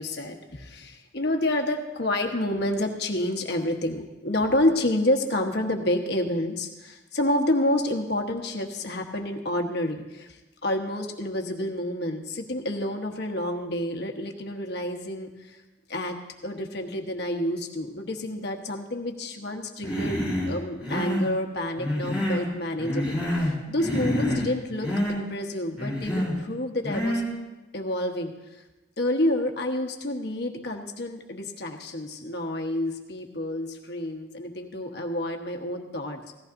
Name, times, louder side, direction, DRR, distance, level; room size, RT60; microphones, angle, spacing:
voice 1, 0.0-15.6 15.9-27.2 27.7-28.6 29.0-36.2, left 1 dB, 60° left, 4 dB, 1.2 m, -29 dB
Human voice, 19.8-20.5 20.8-21.3 21.8-22.5 22.8-23.5 23.8-24.5 24.8-25.2 25.8-26.4 26.8-27.3, equal, 5° right, 3.7 m, -27 dB
17.0 x 14.5 x 2.6 m, 1.1 s
head